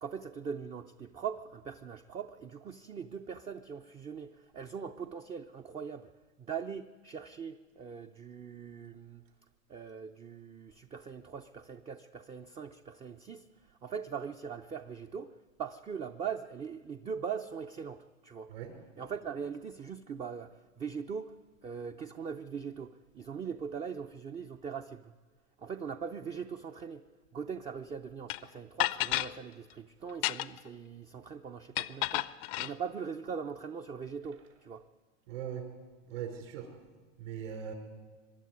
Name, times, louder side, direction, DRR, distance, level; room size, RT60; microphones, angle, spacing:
voice 1, 0.0-6.1 6.4-9.2 9.7-18.5 19.0-25.1 25.6-27.1 27.3-32.3 32.6-34.8, right 6 dB, 15° right, 7 dB, 0.5 m, -41 dB
sound 1, 28.3-28.4 28.8-29.3 30.1-30.7 31.8-32.7, left 19 dB, 45° left, 0.6 m, -31 dB
voice 2, 35.3-35.6 36.1-36.7 37.2-37.7, right 8 dB, 65° right, 4 dB, 5.2 m, -39 dB
23.5 x 12.0 x 9.4 m, 1.4 s
hypercardioid pair, 110°, 40 cm